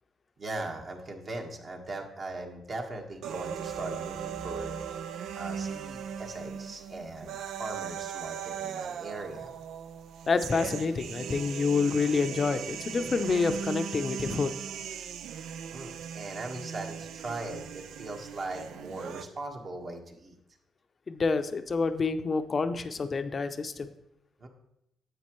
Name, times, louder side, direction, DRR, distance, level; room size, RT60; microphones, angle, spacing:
voice 1, 0.4-5.0 5.3-9.5 15.7-20.4 24.4-24.5, right 2 dB, 45° right, 2 dB, 1.5 m, -39 dB
sound 1, 3.2-19.2, right 8 dB, 75° right, 0.4 m, -38 dB
voice 2, 10.3-14.6 21.1-23.9, left 4 dB, 40° left, 9 dB, 0.6 m, -28 dB
9.8 x 7.8 x 3.1 m, 0.80 s
cardioid pair, 90°, 0 cm